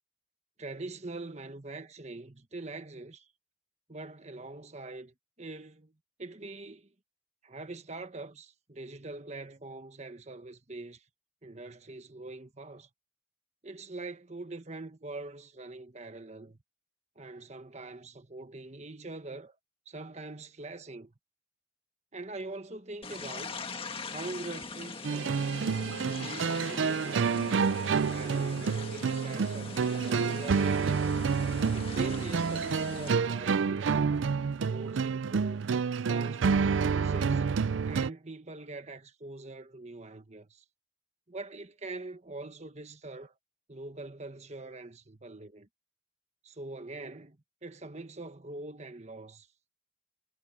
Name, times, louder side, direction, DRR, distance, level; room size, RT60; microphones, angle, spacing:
voice 1, 0.6-3.3 3.9-5.9 6.2-6.9 7.4-11.0 11.4-12.9 13.6-16.6 17.1-19.5 19.8-21.1 22.1-23.6 24.1-25.5 26.0-27.4 28.0-31.1 31.7-34.0 34.6-35.6 36.0-37.4 37.8-40.6 41.3-43.3 43.7-45.7 46.4-49.5, right 2 dB, 35° right, 1.4 m, -43 dB
sound 1, 23.0-33.1, left 4 dB, 30° left, 1.8 m, -42 dB
sound 2, 25.0-38.1, right 5 dB, 80° right, 0.4 m, -28 dB
head